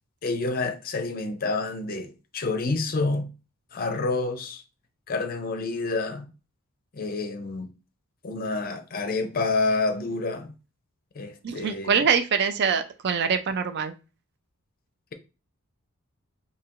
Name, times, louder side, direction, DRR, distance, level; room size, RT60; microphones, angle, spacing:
voice 1, 0.2-3.3 3.7-4.6 5.1-6.3 6.9-7.7 8.2-10.5 11.1-12.0, left 3 dB, 40° left, 0.5 m, -28 dB
voice 2, 11.4-13.9, right 6 dB, 50° right, 0.4 m, -24 dB
4.5 x 2.8 x 2.4 m
head